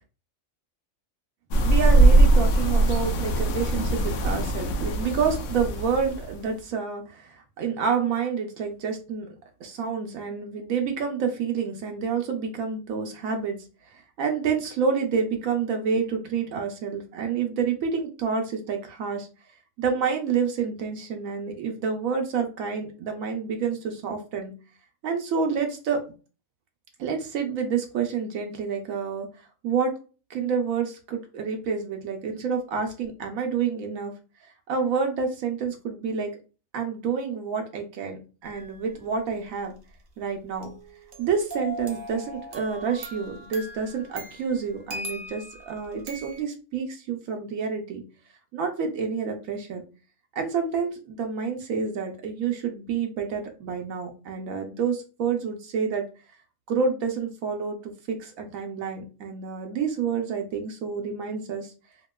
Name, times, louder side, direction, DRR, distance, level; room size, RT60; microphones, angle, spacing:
sound 1, 1.5-6.5, right 2 dB, 90° left, 1.0 m, -21 dB
voice 1, 1.6-9.3 9.6-19.3 19.8-24.5 25.0-26.0 27.0-29.3 29.6-29.9 30.3-34.1 34.7-36.3 36.7-39.8 40.2-40.7 41.2-48.0 48.5-49.8 50.3-56.1 56.7-61.7, right 6 dB, 80° right, 4 dB, 1.0 m, -28 dB
sound 2, 38.4-38.9 40.6-46.4, equal, 55° right, 0.6 m, -40 dB
2.8 x 2.6 x 2.2 m, 0.35 s
omnidirectional pair, 1.4 m